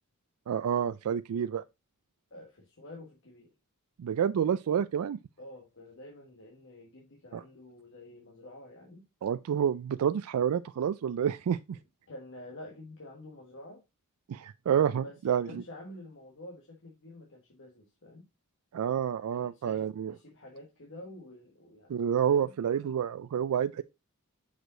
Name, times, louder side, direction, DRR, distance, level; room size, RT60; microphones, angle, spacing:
voice 1, 0.5-1.6 4.0-5.2 7.3-7.4 9.2-11.8 14.3-15.6 18.7-20.1 21.9-23.8, right 8 dB, 80° right, 0.3 m, -29 dB
voice 2, 2.3-3.5 5.4-9.1 12.1-13.8 15.0-18.3 19.3-22.6, left 1 dB, 60° left, 1.4 m, -49 dB
6.3 x 5.0 x 3.8 m
head